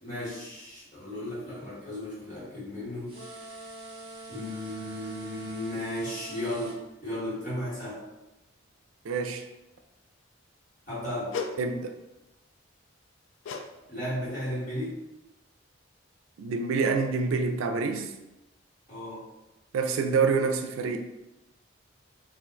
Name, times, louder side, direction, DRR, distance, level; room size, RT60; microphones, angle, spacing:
voice 1, 0.0-3.1 4.3-8.0 10.9-11.3 13.9-15.0 18.9-19.2, left 1 dB, 40° left, -9 dB, 1.4 m, -35 dB
sound 1, 3.1-6.8, right 2 dB, 25° right, 0.7 m, -44 dB
voice 2, 9.0-9.4 11.6-11.9 16.4-18.1 19.7-21.0, right 4 dB, 90° right, 5 dB, 0.4 m, -27 dB
sound 2, 11.3-11.6 13.4-13.7 14.0-14.3 14.8-14.9, left 5 dB, 75° left, 0.3 m, -35 dB
2.4 x 2.2 x 3.7 m, 0.98 s
head